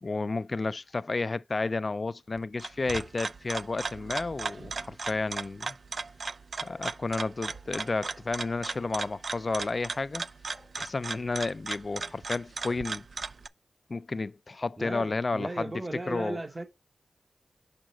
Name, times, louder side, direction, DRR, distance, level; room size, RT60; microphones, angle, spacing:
voice 1, 0.0-5.8 6.6-10.2 10.5-13.1 13.9-15.7 16.1-16.4, left 3 dB, 45° left, 0.4 m, -32 dB
sound 1, 2.4-13.5, right 4 dB, 60° right, 0.3 m, -37 dB
voice 2, 14.8-16.6, right 2 dB, 35° right, 1.1 m, -36 dB
6.2 x 5.0 x 4.4 m
cardioid pair, 65°, 0 cm